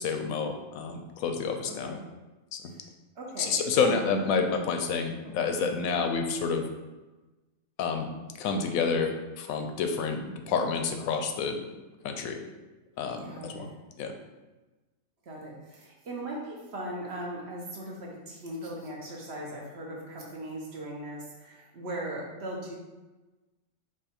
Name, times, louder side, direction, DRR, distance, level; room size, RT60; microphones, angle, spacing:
voice 1, 0.0-2.0 3.4-6.6 7.8-8.1 8.4-9.1 9.4-11.6 12.0-12.4 13.0-13.7 14.0-14.1, left 5 dB, 80° left, 5 dB, 1.0 m, -29 dB
voice 2, 1.7-2.0 2.7-2.8 3.2-4.2 5.2-5.3 13.2-13.7 15.3-22.8, right 1 dB, 55° right, -2 dB, 1.1 m, -39 dB
4.9 x 2.4 x 4.2 m, 1.1 s
omnidirectional pair, 1.4 m